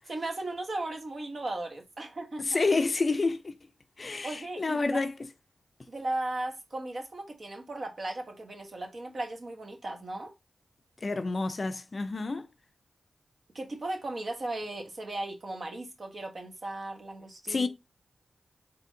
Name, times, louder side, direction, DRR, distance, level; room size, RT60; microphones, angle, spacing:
voice 1, 0.1-2.5 4.2-5.0 5.9-10.3 13.5-17.7, right 2 dB, 55° right, 1.3 m, -36 dB
voice 2, 2.4-3.5 4.0-5.1 11.0-12.5 17.5-17.7, left 3 dB, 50° left, 0.4 m, -29 dB
4.2 x 3.4 x 2.7 m
cardioid pair, 45°, 0 cm